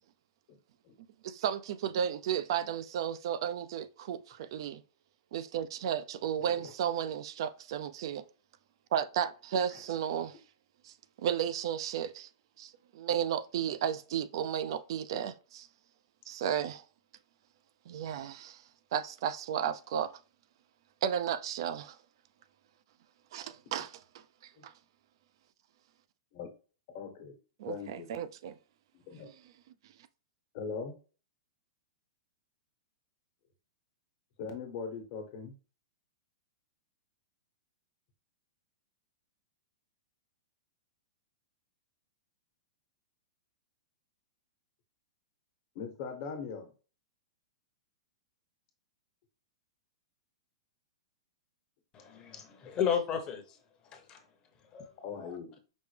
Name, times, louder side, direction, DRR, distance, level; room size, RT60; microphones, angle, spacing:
voice 1, 1.2-4.8 5.3-8.2 8.9-10.4 10.8-10.9 11.2-12.3 12.6-15.7 16.3-16.8 17.9-18.6 18.9-20.1 21.0-22.0 23.3-24.0 24.6-24.7 27.6-28.6 29.2-29.3, right 9 dB, 60° right, 0.4 m, -33 dB
voice 2, 6.4-6.7 9.7-9.8 24.6-24.7 26.3-26.5 26.9-27.4 27.6-28.1 28.9-29.3 30.5-31.0 34.4-35.5 45.7-46.7 55.0-55.6, left 5 dB, 50° left, 1.2 m, -41 dB
voice 3, 51.9-53.6 53.9-54.2 54.7-54.9 55.2-55.3, left 8 dB, 25° left, 0.9 m, -33 dB
5.2 x 2.1 x 3.3 m
hypercardioid pair, 130°, 3 cm